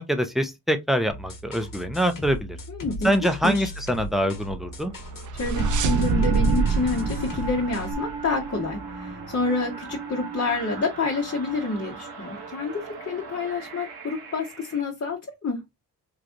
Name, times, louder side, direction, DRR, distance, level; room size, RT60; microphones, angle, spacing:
voice 1, 0.0-2.6 3.0-4.9, equal, ahead, 0.6 m, -24 dB
sound 1, 1.1-7.9, left 2 dB, 55° left, 1.2 m, -38 dB
voice 2, 2.7-3.7 5.3-15.6, left 3 dB, 40° left, 1.1 m, -28 dB
sound 2, 4.8-8.5, right 4 dB, 50° right, 0.6 m, -25 dB
sound 3, 5.5-14.8, right 5 dB, 75° right, 1.0 m, -37 dB
3.2 x 2.4 x 2.5 m
cardioid pair, 60°, 39 cm